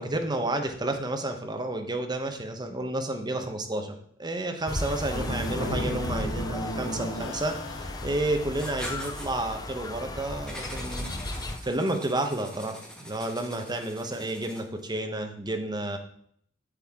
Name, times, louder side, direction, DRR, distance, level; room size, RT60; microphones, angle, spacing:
voice 1, 0.0-16.0, right 1 dB, 20° right, 4 dB, 1.1 m, -31 dB
sound 1, 4.7-11.6, left 2 dB, 20° left, 0.6 m, -36 dB
sound 2, 5.1-8.4, equal, 70° left, 1.4 m, -34 dB
Writing, 8.5-9.3 10.5-14.8, equal, 5° left, 1.5 m, -42 dB
8.2 x 7.7 x 3.7 m, 0.63 s
head